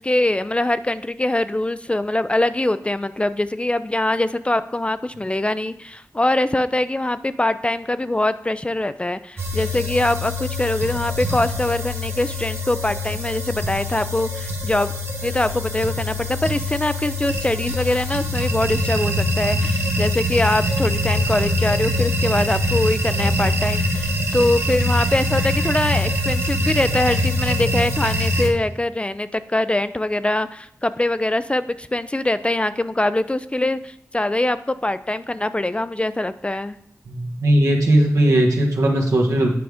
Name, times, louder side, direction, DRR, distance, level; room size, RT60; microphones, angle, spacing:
voice 1, 0.0-14.9 15.2-36.8, left 1 dB, 20° left, 13 dB, 0.3 m, -23 dB
sound 1, 9.4-28.5, left 1 dB, 50° right, 1.1 m, -23 dB
voice 2, 37.1-39.5, right 1 dB, 80° right, 0 dB, 1.2 m, -18 dB
8.7 x 4.8 x 3.5 m, 0.75 s
wide cardioid pair, 65°, 6 cm